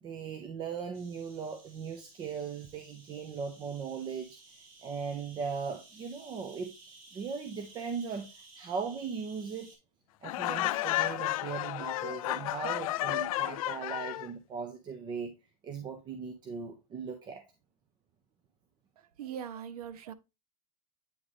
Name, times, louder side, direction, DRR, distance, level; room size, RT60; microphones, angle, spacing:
voice 1, 0.0-4.4 4.8-6.7 7.1-9.8 10.2-15.3 15.6-17.4, right 6 dB, 25° right, 0.7 m, -38 dB
sound 1, 0.9-9.8, right 3 dB, 65° right, 2.8 m, -56 dB
Laughter, 10.2-14.3, left 16 dB, 70° left, 0.5 m, -32 dB
voice 2, 19.0-20.1, right 9 dB, 85° right, 0.7 m, -41 dB
8.6 x 3.8 x 3.2 m
supercardioid pair, 150°, 19 cm